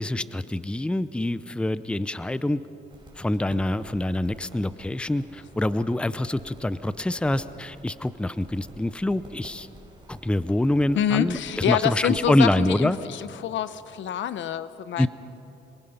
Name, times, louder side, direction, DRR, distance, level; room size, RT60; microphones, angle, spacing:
voice 1, 0.0-2.6 3.2-9.7 10.1-13.0 15.0-15.1, left 1 dB, 5° left, 15 dB, 0.6 m, -25 dB
sound 1, 2.9-12.5, right 2 dB, 25° right, 5.3 m, -49 dB
voice 2, 11.0-15.1, left 10 dB, 70° left, 14 dB, 0.9 m, -27 dB
25.5 x 23.0 x 5.7 m, 2.9 s
cardioid pair, 90°, 20 cm